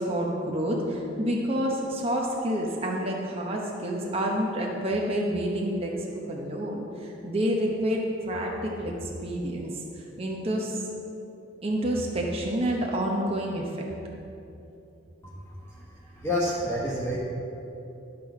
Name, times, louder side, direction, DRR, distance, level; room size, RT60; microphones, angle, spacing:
voice 1, 0.0-9.8 10.2-10.8 11.6-13.8, equal, 30° right, -1 dB, 0.9 m, -28 dB
voice 2, 16.1-17.2, left 1 dB, 15° left, -7 dB, 1.3 m, -28 dB
12.0 x 6.1 x 4.8 m, 2.9 s
head